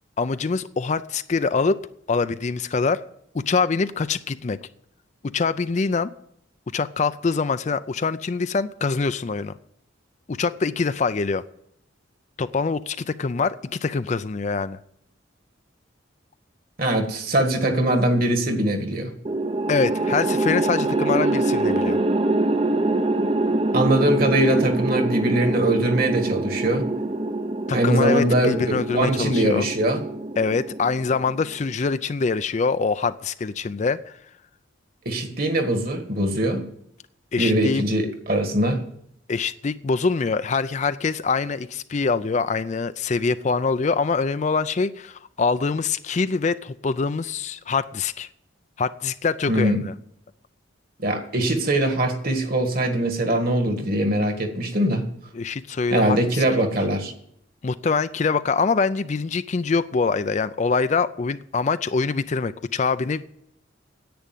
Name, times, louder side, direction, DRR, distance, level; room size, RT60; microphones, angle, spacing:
voice 1, 0.2-1.8 2.1-3.0 3.3-4.6 5.2-6.1 6.7-9.5 10.3-11.4 12.4-14.8 19.7-22.0 27.7-29.7 30.4-34.2 37.3-37.8 39.3-48.3 48.8-49.9 55.3-56.4 57.6-63.4, left 4 dB, 35° left, 13 dB, 0.4 m, -24 dB
voice 2, 16.8-19.1 23.7-26.9 27.7-30.0 35.1-36.7 37.4-38.8 49.5-49.8 51.0-55.1 55.9-57.1, right 1 dB, 50° right, 6 dB, 1.8 m, -22 dB
sound 1, 19.3-31.6, right 2 dB, 30° right, 0.6 m, -24 dB
10.5 x 8.6 x 9.1 m, 0.72 s
head